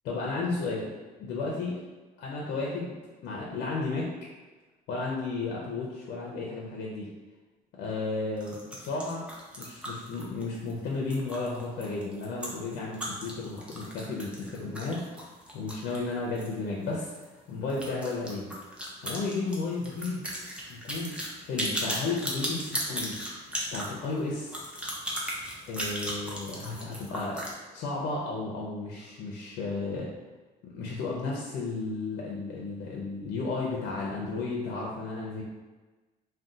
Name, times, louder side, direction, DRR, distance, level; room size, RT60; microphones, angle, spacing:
voice 1, 0.0-0.9 1.2-1.8 2.2-2.9 3.2-4.1 4.9-7.1 7.8-9.3 9.6-15.3 15.5-18.5 19.0-20.3 20.7-21.1 21.4-23.2 23.7-24.6 25.7-27.4 27.7-30.1 30.6-35.4, left 3 dB, 70° left, -3 dB, 0.5 m, -33 dB
sound 1, 8.4-16.6 16.8-16.9 17.2-17.3 17.7-27.5, equal, 5° right, 0.6 m, -36 dB
2.6 x 2.2 x 3.7 m, 1.2 s
cardioid pair, 110°, 17 cm